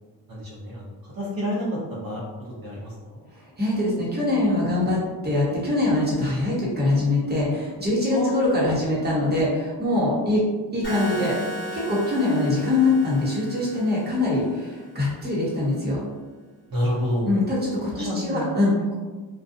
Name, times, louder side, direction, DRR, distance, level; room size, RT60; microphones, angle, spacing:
voice 1, 0.3-2.2 2.6-3.2 8.1-8.5 16.7-17.3 17.9-18.5, equal, 50° right, -7 dB, 0.8 m, -29 dB
voice 2, 3.6-10.4 10.7-11.3 11.7-16.0 17.2-18.9, left 2 dB, 20° right, -6 dB, 0.9 m, -23 dB
sound 1, 10.8-14.9, equal, 25° left, 1.1 m, -35 dB
2.5 x 2.2 x 2.6 m, 1.3 s
cardioid pair, 75°, 45 cm